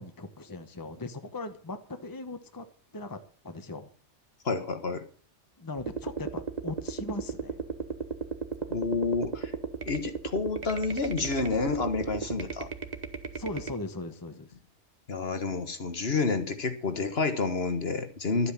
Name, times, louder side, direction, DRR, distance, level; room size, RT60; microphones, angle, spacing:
voice 1, 0.0-2.6 2.9-3.2 3.4-3.9 5.6-7.6 13.3-14.5, left 2 dB, 20° left, 8 dB, 1.1 m, -39 dB
voice 2, 4.5-5.0 8.7-9.5 9.9-12.7 15.1-18.5, left 4 dB, 55° left, 8 dB, 1.7 m, -29 dB
sound 1, 5.8-13.7, right 5 dB, 35° right, 1.4 m, -35 dB
12.5 x 8.4 x 7.4 m, 0.42 s
omnidirectional pair, 1.3 m